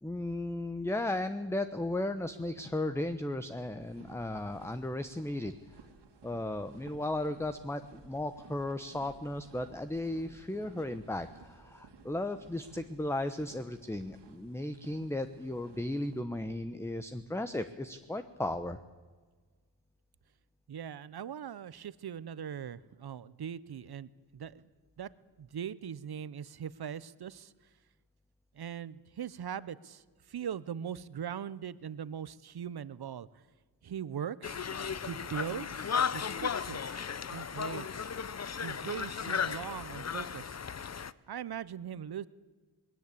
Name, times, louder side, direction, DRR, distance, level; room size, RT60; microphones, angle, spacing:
voice 1, 0.0-5.5 6.2-18.8, left 1 dB, 5° left, 10 dB, 1.0 m, -35 dB
sound 1, 3.8-16.2, right 4 dB, 75° right, 2.4 m, -56 dB
voice 2, 20.7-24.6 25.0-25.1 25.4-27.5 28.5-30.0 30.3-33.3 33.8-34.7 35.0-37.0 37.3-38.1 38.6-40.5 41.3-42.3, right 8 dB, 60° right, 17 dB, 0.9 m, -40 dB
Conversation, 34.4-41.1, left 6 dB, 40° left, 0.7 m, -35 dB
20.0 x 17.5 x 8.5 m, 1.4 s
cardioid pair, 65°, 42 cm